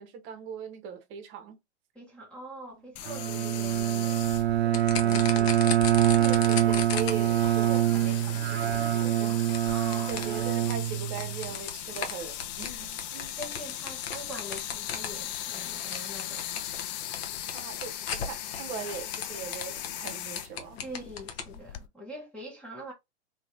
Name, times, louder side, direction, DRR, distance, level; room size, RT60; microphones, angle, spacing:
voice 1, 0.0-1.6 6.2-9.5 10.1-13.4 17.5-20.8, right 7 dB, 35° right, 0.9 m, -40 dB
voice 2, 1.9-5.6 9.6-10.4 13.4-16.5 20.8-22.9, equal, 5° left, 0.8 m, -44 dB
sound 1, 2.9-21.9, left 11 dB, 40° left, 0.4 m, -39 dB
Bowed string instrument, 3.1-11.5, right 12 dB, 70° right, 0.6 m, -25 dB
sound 2, 4.7-21.6, left 7 dB, 65° left, 0.9 m, -38 dB
2.9 x 2.8 x 2.5 m
hypercardioid pair, 115°, 34 cm